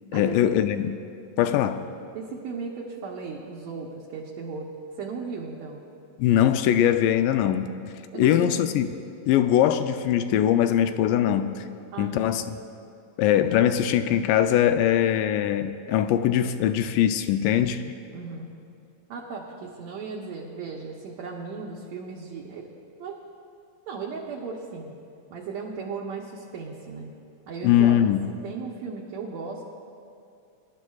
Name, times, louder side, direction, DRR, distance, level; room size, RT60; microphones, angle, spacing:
voice 1, 0.1-1.0 1.4-1.8 6.2-7.7 8.2-8.9 9.3-11.6 12.0-12.4 13.2-17.8 27.6-28.3, left 10 dB, 90° left, 10 dB, 2.2 m, -21 dB
voice 2, 2.1-4.7 5.0-5.8 8.1-8.7 11.9-12.3 18.1-18.5 19.1-22.7 23.0-23.2 23.9-25.0 25.3-27.1 27.5-28.0 28.4-29.7, right 5 dB, 70° right, -2 dB, 1.9 m, -36 dB
22.5 x 11.5 x 2.4 m, 2.5 s
omnidirectional pair, 3.8 m